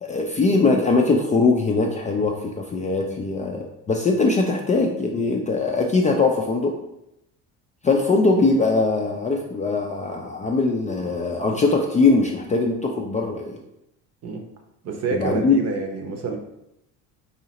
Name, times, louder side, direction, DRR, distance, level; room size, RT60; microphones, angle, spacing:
voice 1, 0.0-6.7 7.8-13.6 15.1-15.6, left 3 dB, 20° left, 1 dB, 0.4 m, -21 dB
voice 2, 14.8-16.4, right 4 dB, 45° right, 3 dB, 0.8 m, -27 dB
4.0 x 2.7 x 2.9 m, 0.83 s
supercardioid pair, 95°, 37 cm